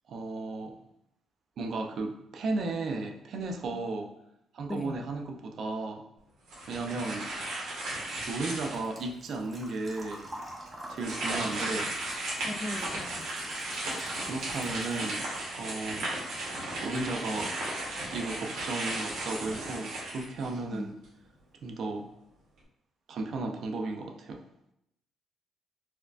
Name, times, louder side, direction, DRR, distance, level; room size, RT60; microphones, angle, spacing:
voice 1, 0.1-0.7 1.6-4.1 4.5-6.0 6.7-7.3 8.2-10.3 10.9-11.9 14.2-15.3 15.5-16.1 16.8-17.5 18.1-21.0 21.6-22.1 23.1-24.4, right 3 dB, 65° right, 3 dB, 0.5 m, -34 dB
sound 1, 6.5-9.0 9.6-9.7 10.9-20.7, right 1 dB, 85° right, 1.3 m, -35 dB
Engine / Trickle dribble / Fill (with liquid), 7.8-15.7 16.0-17.0 17.3-17.4 19.3-19.4 19.6-19.9 20.3-20.4 20.7-20.8, right 1 dB, 25° right, 0.8 m, -47 dB
voice 2, 12.4-13.3 20.7-21.0, left 1 dB, 25° left, 7 dB, 0.3 m, -38 dB
4.3 x 2.5 x 2.3 m, 0.78 s
cardioid pair, 90°, 0 cm